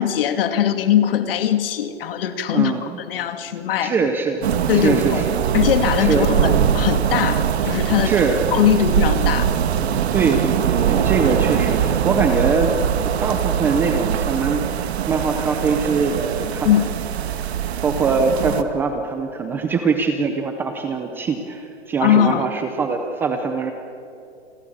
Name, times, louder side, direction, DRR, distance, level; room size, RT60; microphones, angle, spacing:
voice 1, 0.0-4.0 4.7-5.2 5.5-8.1 8.5-9.5 16.7-16.9 22.0-22.4, left 10 dB, 50° left, 9 dB, 2.3 m, -20 dB
voice 2, 2.5-2.9 3.8-4.4 4.7-5.3 6.0-6.3 8.0-8.5 10.1-12.7 13.0-14.6 15.1-16.7 17.8-23.7, right 5 dB, 5° right, 5 dB, 0.5 m, -22 dB
sound 1, 4.4-18.6, right 9 dB, 65° right, 1.9 m, -22 dB
30.0 x 23.0 x 8.6 m, 2.7 s
hypercardioid pair, 170°, 35 cm